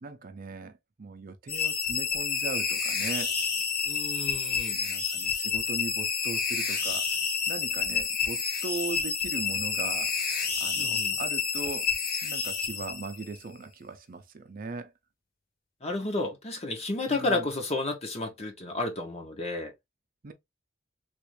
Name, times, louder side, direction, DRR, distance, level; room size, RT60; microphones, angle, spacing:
voice 1, 0.0-3.3 4.7-7.2 7.5-11.9 12.2-14.9 17.1-17.5 20.2-20.3, right 3 dB, 50° right, 0.5 m, -39 dB
sound 1, 1.5-13.4, left 6 dB, 55° left, 1.0 m, -29 dB
voice 2, 3.8-4.8 10.8-11.2 15.8-19.7, left 2 dB, 35° left, 1.0 m, -31 dB
3.5 x 2.5 x 3.1 m
head